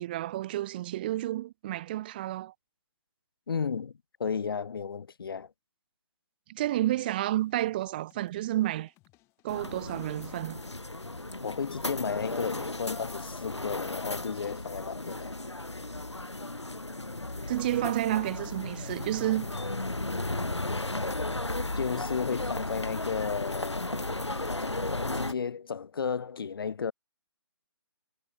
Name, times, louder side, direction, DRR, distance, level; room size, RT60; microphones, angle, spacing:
voice 1, 0.0-2.5 6.5-8.9 9.4-10.6 17.5-19.5, right 14 dB, 20° right, 0.5 m, -30 dB
voice 2, 3.5-3.9 4.2-5.5 11.4-15.3 21.8-23.9 24.4-26.9, left 6 dB, 55° left, 0.5 m, -33 dB
sound 1, 6.7-12.2, left 22 dB, 20° left, 6.7 m, -66 dB
sound 2, 9.5-25.3, left 2 dB, 85° left, 1.4 m, -35 dB
figure-of-eight pair, 140°, 14 cm